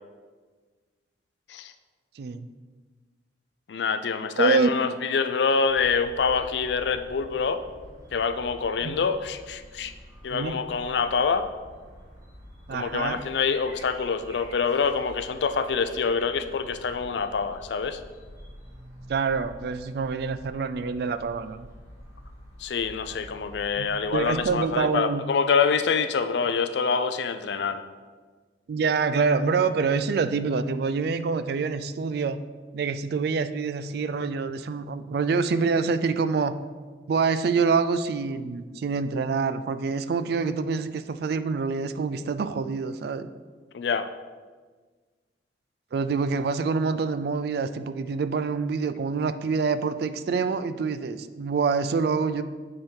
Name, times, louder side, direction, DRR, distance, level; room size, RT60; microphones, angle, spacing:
voice 1, 2.2-2.5 4.4-4.7 8.8-8.9 10.3-10.6 12.7-13.2 19.1-21.7 23.8-25.2 28.7-32.4 32.7-36.5 37.1-43.3 45.9-52.4, right 5 dB, 55° right, 12 dB, 0.3 m, -26 dB
voice 2, 3.7-7.6 8.1-9.9 10.2-11.5 12.7-18.0 22.6-27.8 43.7-44.1, left 5 dB, 70° left, 10 dB, 0.4 m, -26 dB
sound 1, 5.7-24.6, equal, 15° right, 1.8 m, -47 dB
8.5 x 3.6 x 4.4 m, 1.4 s
head